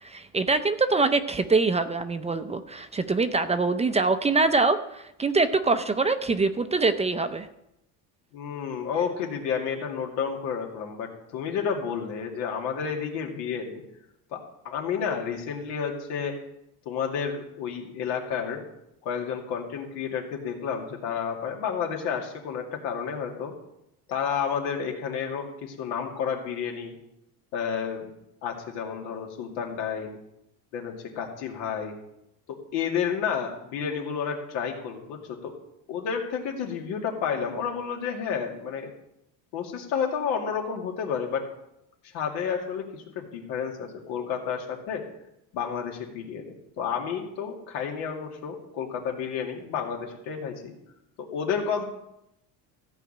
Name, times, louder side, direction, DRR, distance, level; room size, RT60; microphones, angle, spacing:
voice 1, 0.0-7.5, right 3 dB, 15° right, 10 dB, 0.5 m, -24 dB
voice 2, 8.3-13.8 14.3-14.4 14.6-16.3 16.9-18.6 19.0-23.5 24.1-27.0 27.5-28.1 28.4-30.2 30.7-31.9 32.5-35.5 35.9-38.9 39.5-41.4 42.1-45.0 45.5-50.7 51.2-51.8, left 7 dB, 85° left, 2 dB, 2.5 m, -31 dB
14.5 x 4.9 x 8.7 m, 0.83 s
cardioid pair, 125°, 41 cm